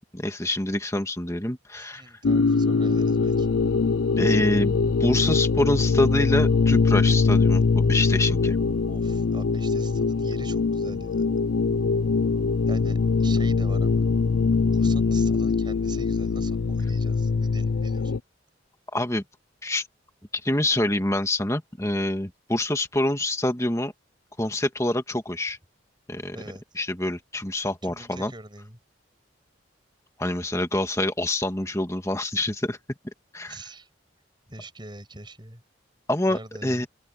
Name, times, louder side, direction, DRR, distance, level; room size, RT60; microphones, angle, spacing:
voice 1, 0.1-2.0 4.2-8.6 18.9-19.2 19.6-19.9 20.3-23.9 24.4-25.6 26.1-26.4 26.8-28.3 30.2-32.8 33.3-33.6 36.1-36.9, left 1 dB, 15° left, 1.8 m, -26 dB
voice 2, 1.8-3.5 8.9-11.4 12.6-14.1 14.6-18.1 26.3-26.6 27.8-28.8 33.5-33.9 34.5-35.6 36.3-36.8, right 2 dB, 25° right, 7.2 m, -43 dB
sound 1, 2.2-18.2, left 4 dB, 85° left, 0.5 m, -22 dB
open air
head